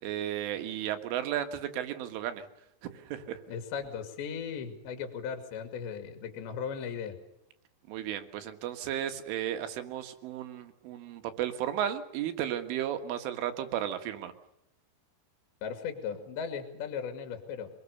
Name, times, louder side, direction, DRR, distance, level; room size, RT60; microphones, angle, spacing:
voice 1, 0.0-2.5 2.9-3.4 7.9-14.3, right 11 dB, 85° right, 8 dB, 4.2 m, -34 dB
voice 2, 3.5-7.2 15.6-17.7, left 7 dB, 70° left, 6 dB, 4.5 m, -37 dB
25.5 x 21.0 x 6.8 m, 0.83 s
omnidirectional pair, 5.5 m